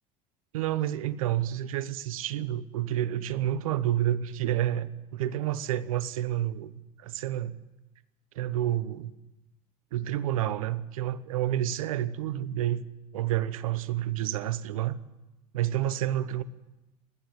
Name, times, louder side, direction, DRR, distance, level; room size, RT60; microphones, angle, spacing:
voice 1, 0.5-6.7 7.0-7.6 8.3-9.1 9.9-12.8 13.1-15.0 15.5-16.4, right 12 dB, 80° right, 15 dB, 1.0 m, -29 dB
28.5 x 10.5 x 9.9 m, 1.0 s
hypercardioid pair, 75°, 18 cm